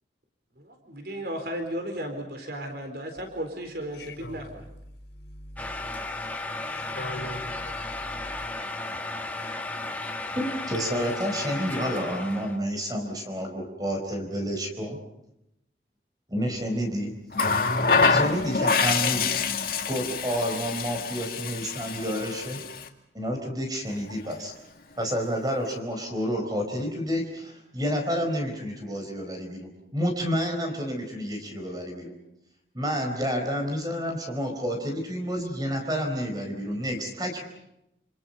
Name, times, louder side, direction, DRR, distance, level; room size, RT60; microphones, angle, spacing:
voice 1, 0.6-4.0 4.2-4.6, right 1 dB, 60° right, 5 dB, 4.2 m, -34 dB
voice 2, 4.0-8.5, left 1 dB, 80° left, 6 dB, 5.1 m, -42 dB
sound 1, 5.6-12.6, left 2 dB, 10° left, 2.1 m, -34 dB
voice 3, 10.4-15.0 16.3-17.2 17.9-19.3 19.9-22.6 23.1-24.5 25.0-32.1 32.7-37.4, equal, 20° right, 4 dB, 4.5 m, -29 dB
Water tap faucet, 17.3-22.9 24.1-24.3, left 4 dB, 55° left, 2.2 m, -26 dB
28.5 x 28.0 x 5.5 m, 0.82 s
head